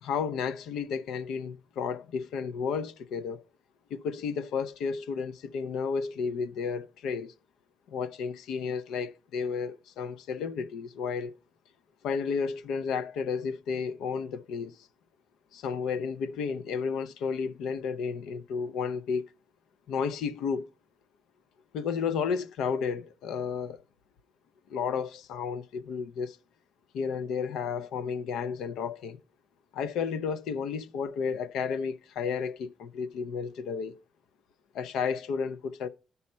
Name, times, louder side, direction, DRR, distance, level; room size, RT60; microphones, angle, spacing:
voice 1, 0.0-3.4 3.9-7.3 7.9-11.3 12.0-14.8 15.5-19.2 19.9-20.7 21.7-23.8 24.7-26.4 26.9-29.2 29.7-34.0 34.7-35.9, left 6 dB, 85° left, 0.5 m, -32 dB
9.6 x 5.5 x 4.2 m
cardioid pair, 90°, 0 cm